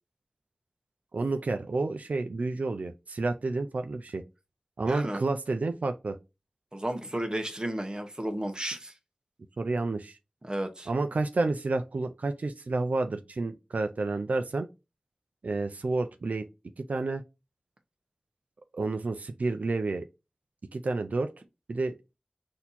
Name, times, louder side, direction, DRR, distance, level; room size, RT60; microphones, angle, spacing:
voice 1, 1.1-4.2 4.8-6.2 9.6-10.2 10.9-14.7 15.4-16.5 16.8-17.2 18.7-20.0 20.7-21.3 21.7-21.9, right 3 dB, 90° right, 0.4 m, -30 dB
voice 2, 4.8-5.2 6.7-8.9 10.4-10.9, right 1 dB, 35° right, 1.0 m, -33 dB
4.3 x 2.8 x 4.1 m
wide cardioid pair, 40°, 3 cm